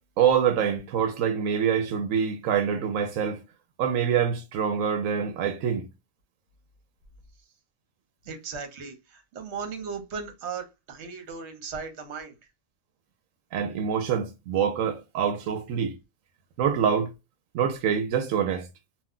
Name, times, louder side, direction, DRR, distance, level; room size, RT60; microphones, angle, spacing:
voice 1, 0.2-3.4 3.8-5.9 13.5-15.9 16.6-17.1 17.5-18.7, right 8 dB, 90° right, 1.0 m, -25 dB
voice 2, 8.3-12.3, right 5 dB, 60° right, 1.1 m, -37 dB
2.5 x 2.1 x 3.7 m
omnidirectional pair, 1.3 m